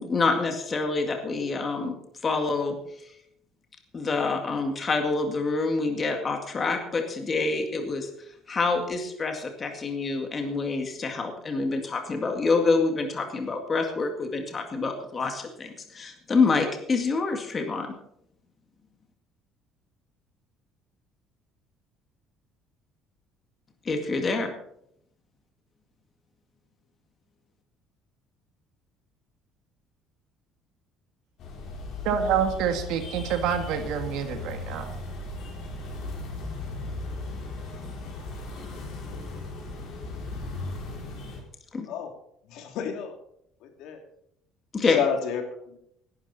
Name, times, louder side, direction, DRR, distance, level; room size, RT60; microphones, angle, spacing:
voice 1, 0.0-1.9 2.2-2.8 3.9-8.1 8.5-17.9 23.9-24.5 41.7-41.9 44.7-45.0, left 4 dB, 20° left, 4 dB, 2.0 m, -26 dB
sound 1, 31.4-41.4, left 3 dB, 45° left, 4.4 m, -37 dB
voice 2, 32.0-35.0, right 8 dB, 70° right, 6 dB, 2.1 m, -27 dB
voice 3, 42.5-43.1 43.8-44.0 44.8-45.4 45.7-45.8, left 7 dB, 65° left, 4 dB, 2.9 m, -30 dB
17.5 x 11.5 x 4.3 m, 0.73 s
cardioid pair, 175°, 0 cm